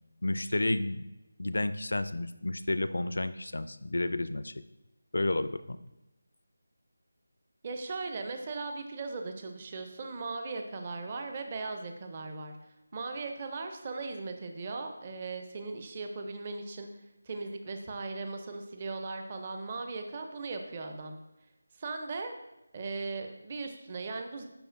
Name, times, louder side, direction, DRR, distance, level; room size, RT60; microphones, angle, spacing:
voice 1, 0.2-1.0 1.4-4.6 5.1-5.8, left 2 dB, 75° left, 13 dB, 0.4 m, -31 dB
voice 2, 7.6-12.5 12.9-16.9 17.2-21.2 21.8-22.3 22.7-24.4, right 3 dB, 25° right, 5 dB, 0.5 m, -38 dB
10.5 x 4.4 x 2.5 m, 0.96 s
figure-of-eight pair, 175°, 0 cm